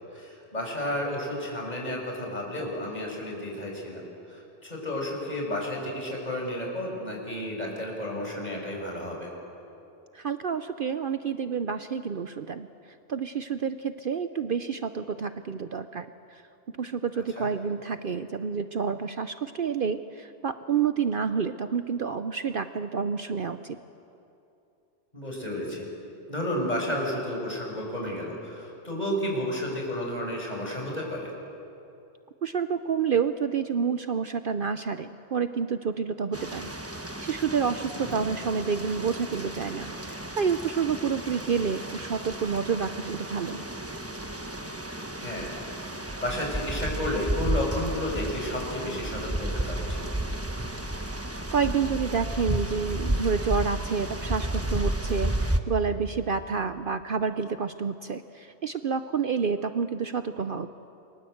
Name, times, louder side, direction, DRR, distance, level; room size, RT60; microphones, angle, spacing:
voice 1, 0.1-4.0 4.3-9.3 17.1-17.5 25.1-25.9 26.3-31.3 38.0-38.2 45.2-45.5 45.8-50.0, left 1 dB, 35° left, 0 dB, 6.3 m, -32 dB
voice 2, 10.1-12.7 13.1-16.4 16.8-23.8 32.4-36.7 37.2-43.6 51.5-60.7, right 6 dB, 55° right, 10 dB, 0.9 m, -29 dB
sound 1, 36.3-55.6, right 1 dB, 15° right, 1.2 m, -32 dB
29.5 x 24.0 x 7.9 m, 2.8 s
omnidirectional pair, 1.2 m